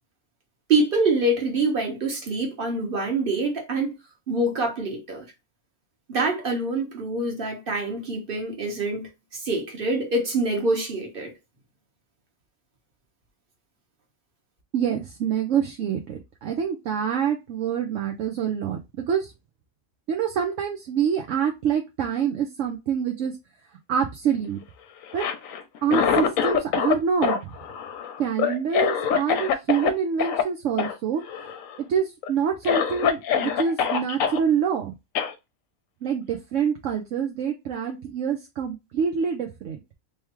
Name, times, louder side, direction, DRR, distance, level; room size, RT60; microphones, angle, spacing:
voice 1, 0.7-4.0 4.3-5.3 6.1-11.3, right 2 dB, 40° right, 1.4 m, -25 dB
voice 2, 14.7-19.3 20.1-23.4 23.9-24.6 25.1-25.2 25.8-27.5 28.2-31.2 31.9-34.9 36.0-39.8, right 7 dB, 70° right, 1.0 m, -26 dB
Cough, 25.0-27.0 27.2-29.9 30.2-30.4 30.8-30.9 31.2-31.8 32.2-32.3 32.6-34.4 35.1-35.3, left 8 dB, 75° left, 1.0 m, -24 dB
3.4 x 3.3 x 3.0 m
omnidirectional pair, 1.5 m